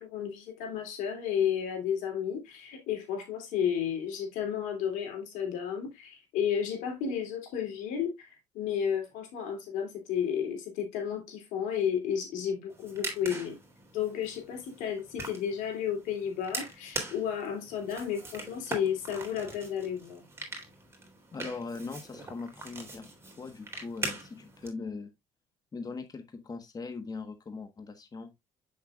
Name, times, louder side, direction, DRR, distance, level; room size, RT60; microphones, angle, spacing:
voice 1, 0.0-13.6 13.9-20.2, left 8 dB, 85° left, 2.9 m, -32 dB
sound 1, 12.7-24.7, right 2 dB, 20° right, 3.3 m, -42 dB
voice 2, 21.3-23.1 23.4-25.1 25.7-28.3, left 4 dB, 30° left, 1.3 m, -40 dB
7.9 x 6.7 x 2.4 m
cardioid pair, 85°, 13 cm